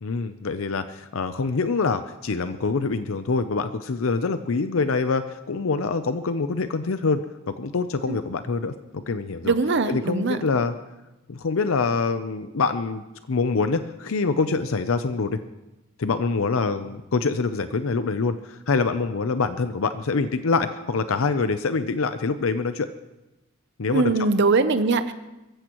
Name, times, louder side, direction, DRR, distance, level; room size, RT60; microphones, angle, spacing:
voice 1, 0.0-9.5 9.9-10.7 11.3-13.0 13.3-15.4 16.0-22.9 23.8-24.1, left 4 dB, 80° left, 10 dB, 0.6 m, -25 dB
voice 2, 9.4-10.4 23.9-25.1, right 3 dB, 60° right, 11 dB, 0.7 m, -21 dB
23.0 x 14.5 x 3.0 m, 1.0 s
head